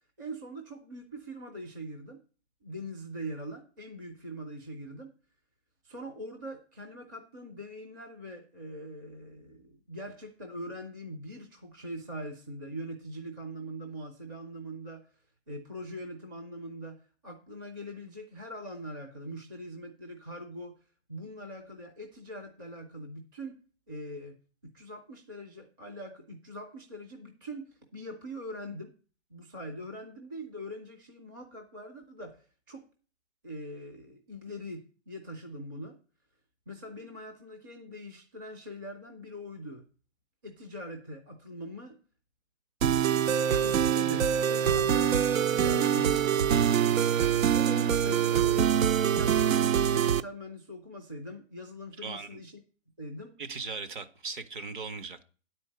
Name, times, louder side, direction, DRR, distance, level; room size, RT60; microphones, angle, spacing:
voice 1, 0.2-2.2 2.6-5.1 5.8-15.1 15.5-20.8 21.1-23.6 23.9-24.4 24.6-28.9 29.3-32.9 33.4-36.0 36.7-39.8 40.4-42.0 43.6-46.5 47.5-52.5 53.0-53.4, equal, 15° right, 3 dB, 0.5 m, -42 dB
sound 1, 42.8-50.2, right 9 dB, 85° right, 0.6 m, -24 dB
voice 2, 52.0-52.4 53.4-55.2, right 4 dB, 40° right, 10 dB, 0.8 m, -38 dB
9.9 x 4.4 x 7.7 m, 0.39 s
hypercardioid pair, 165°, 39 cm